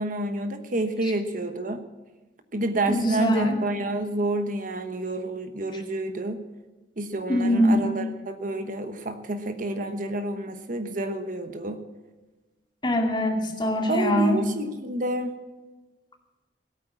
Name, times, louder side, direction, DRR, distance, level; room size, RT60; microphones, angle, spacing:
voice 1, 0.0-1.8 2.5-6.4 7.0-11.8 13.9-15.4, right 2 dB, 50° right, 8 dB, 1.1 m, -29 dB
voice 2, 2.9-3.6 7.3-7.8 12.8-14.4, left 1 dB, 25° left, 2 dB, 2.3 m, -22 dB
16.5 x 9.0 x 7.6 m, 1.2 s
head